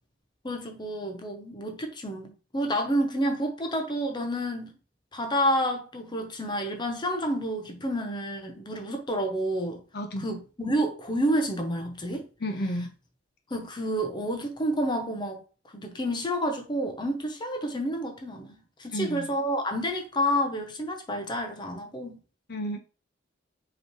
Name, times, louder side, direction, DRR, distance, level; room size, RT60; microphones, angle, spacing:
voice 1, 0.4-4.7 5.1-9.8 10.2-12.3 13.5-15.4 15.7-22.2, equal, 25° left, 0.8 m, -29 dB
voice 2, 9.9-10.3 12.4-12.9 18.9-19.3 22.5-22.8, equal, 60° left, 1.0 m, -31 dB
5.4 x 3.2 x 3.0 m
head